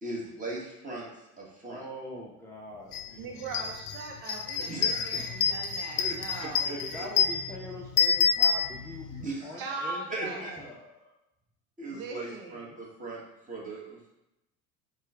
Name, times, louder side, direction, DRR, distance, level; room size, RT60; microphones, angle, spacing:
voice 1, 0.0-1.1 1.4-1.8 4.5-5.1 6.0-7.1 9.2-10.5 11.8-13.2 13.5-14.1, right 2 dB, 15° right, -4 dB, 1.3 m, -39 dB
voice 2, 1.6-3.6 5.1-5.5 6.6-11.1, left 1 dB, 5° left, -5 dB, 0.6 m, -44 dB
sound 1, 2.9-3.1 3.4-9.2, left 6 dB, 75° left, 0.6 m, -28 dB
voice 3, 3.2-6.8 9.6-10.8 11.9-12.8, right 3 dB, 60° right, 2 dB, 0.8 m, -40 dB
4.2 x 2.3 x 3.6 m, 0.91 s
hypercardioid pair, 80°, 48 cm